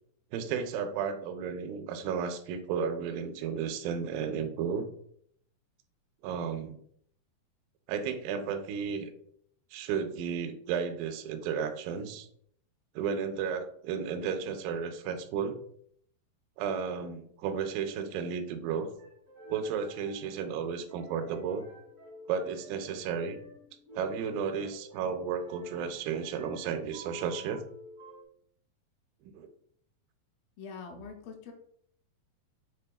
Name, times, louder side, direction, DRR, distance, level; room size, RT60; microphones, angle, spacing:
voice 1, 0.3-4.9 6.2-6.8 7.9-9.1 9.7-12.3 13.0-15.6 16.6-18.9 19.5-21.6 22.3-23.4 23.9-27.7 29.2-29.5, right 6 dB, 80° right, 7 dB, 2.2 m, -33 dB
sound 1, 18.8-28.2, right 1 dB, 60° right, 0.6 m, -51 dB
voice 2, 30.6-31.5, left 5 dB, 80° left, 2 dB, 2.4 m, -44 dB
6.7 x 3.2 x 2.3 m, 0.65 s
omnidirectional pair, 4.3 m